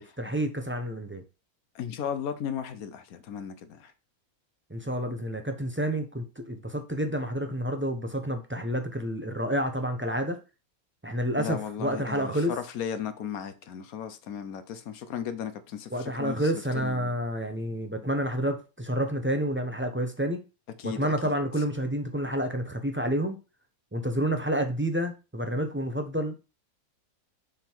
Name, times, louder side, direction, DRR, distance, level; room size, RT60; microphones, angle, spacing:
voice 1, 0.2-1.2 4.7-10.4 11.0-12.5 15.9-20.4 20.8-23.4 23.9-26.4, right 1 dB, 10° right, 0.6 m, -29 dB
voice 2, 1.7-3.9 11.4-17.1 20.8-21.3, left 8 dB, 75° left, 1.2 m, -36 dB
6.8 x 3.7 x 4.5 m
omnidirectional pair, 1.6 m